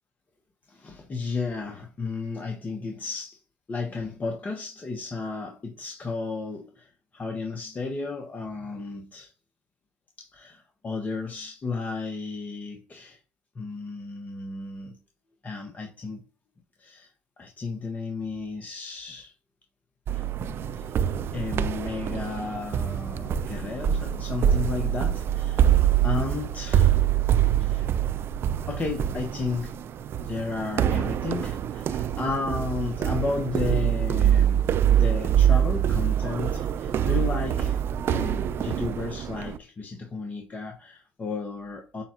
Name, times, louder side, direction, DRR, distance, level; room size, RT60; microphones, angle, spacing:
voice 1, 0.7-3.4 3.7-9.3 10.2-13.2 13.5-15.0 15.4-16.2 16.8-17.1 17.4-19.3 20.1-20.3 20.7-20.9 21.3-26.9 27.6-27.9 28.7-29.8 30.2-37.8 38.1-42.0, left 4 dB, 35° left, 1.0 m, -33 dB
sound 1, 20.1-39.6, right 10 dB, 55° right, 0.3 m, -25 dB
6.9 x 2.3 x 2.9 m
supercardioid pair, 65°, 5 cm